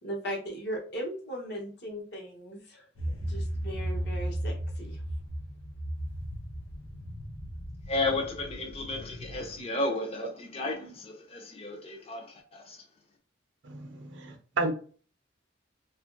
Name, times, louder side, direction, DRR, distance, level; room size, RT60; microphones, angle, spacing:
voice 1, 0.0-2.9 3.3-5.0, equal, 55° left, 0.9 m, -38 dB
sound 1, 3.0-9.6, equal, 80° left, 0.7 m, -36 dB
voice 2, 7.9-12.8, left 2 dB, 30° left, 0.5 m, -33 dB
voice 3, 14.2-14.7, right 3 dB, 65° right, 0.5 m, -30 dB
2.9 x 2.4 x 2.4 m
head